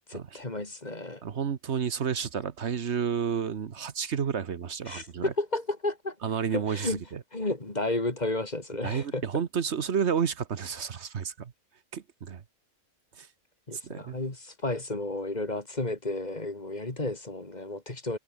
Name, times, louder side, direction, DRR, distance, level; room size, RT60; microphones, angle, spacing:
voice 1, 0.1-1.2 4.9-6.1 6.5-7.0 7.3-9.2 13.7-18.2, left 2 dB, 35° left, 2.8 m, -32 dB
voice 2, 1.2-5.3 6.2-7.2 8.8-11.5 11.9-12.4 13.2-13.3 13.8-14.2, right 7 dB, 65° right, 1.4 m, -31 dB
omnidirectional pair, 1.2 m